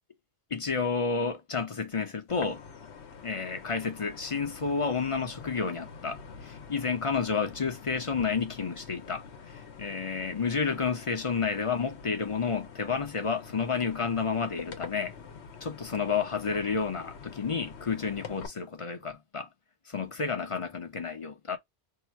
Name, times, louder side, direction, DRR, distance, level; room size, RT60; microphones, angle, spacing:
voice 1, 0.5-2.6 3.2-15.2 15.6-19.5 19.9-21.6, left 5 dB, 35° left, 0.7 m, -31 dB
sound 1, 2.3-18.5, left 6 dB, 80° left, 1.2 m, -46 dB
2.9 x 2.5 x 4.3 m
omnidirectional pair, 1.1 m